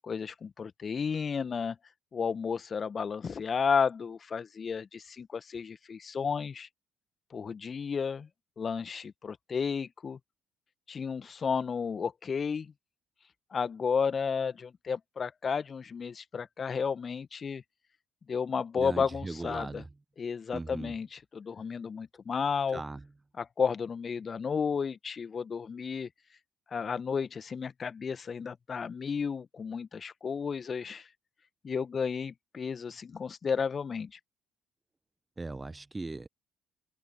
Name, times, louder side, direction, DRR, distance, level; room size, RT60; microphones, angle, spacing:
voice 1, 0.0-1.8 2.1-6.7 7.3-8.3 8.6-10.2 10.9-12.7 13.5-17.6 18.3-19.8 20.2-22.8 23.4-26.1 26.7-31.1 31.6-34.2, left 6 dB, 40° left, 1.8 m, -32 dB
voice 2, 18.7-19.9 20.5-20.9 22.7-23.1 35.4-36.3, right 2 dB, 20° right, 1.4 m, -38 dB
figure-of-eight pair, 45°, 0 cm